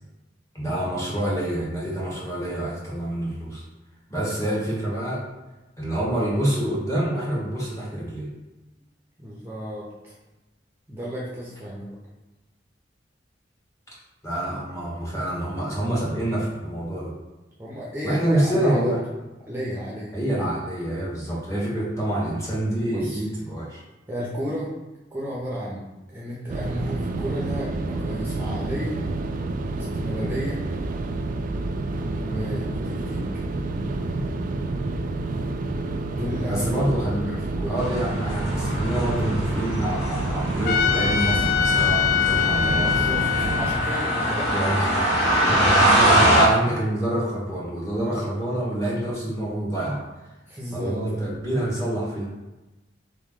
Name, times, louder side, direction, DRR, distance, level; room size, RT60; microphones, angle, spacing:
voice 1, 0.5-3.6 4.1-5.2 5.8-8.3 14.2-17.1 18.0-19.0 20.1-23.8 36.5-43.0 44.5-50.0 50.7-52.3, right 1 dB, 15° left, -6 dB, 1.3 m, -27 dB
voice 2, 9.2-10.1 10.9-12.0 17.6-19.0 19.5-20.2 22.9-23.2 24.1-24.7 25.1-29.0 29.7-30.6 32.2-33.3 36.1-36.7 37.3-37.7 42.7-44.6 50.5-51.3, equal, 10° right, -7 dB, 0.7 m, -32 dB
sound 1, 26.5-43.7, right 2 dB, 45° right, 0.3 m, -28 dB
sound 2, 37.8-46.5, right 1 dB, 75° left, 1.5 m, -23 dB
Trumpet, 40.7-45.8, left 8 dB, 50° left, 0.3 m, -25 dB
4.0 x 3.0 x 3.7 m, 1.1 s
head